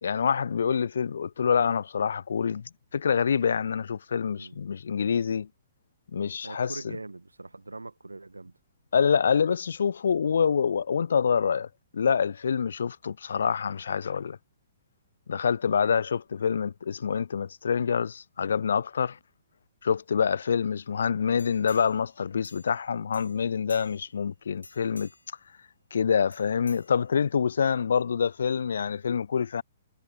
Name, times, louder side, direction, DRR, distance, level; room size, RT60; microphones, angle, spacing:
voice 1, 0.0-2.6 2.9-5.5 6.1-6.7 8.9-11.7 11.9-14.4 15.3-19.2 19.8-25.1 25.9-29.6, left 6 dB, 60° left, 0.3 m, -26 dB
voice 2, 6.4-8.5, right 2 dB, 75° right, 1.8 m, -42 dB
sound 1, 21.4-22.9 23.1-24.2 24.6-25.4 26.3-27.4 27.9-28.0, left 2 dB, 80° left, 3.0 m, -50 dB
figure-of-eight pair, 120°, 0 cm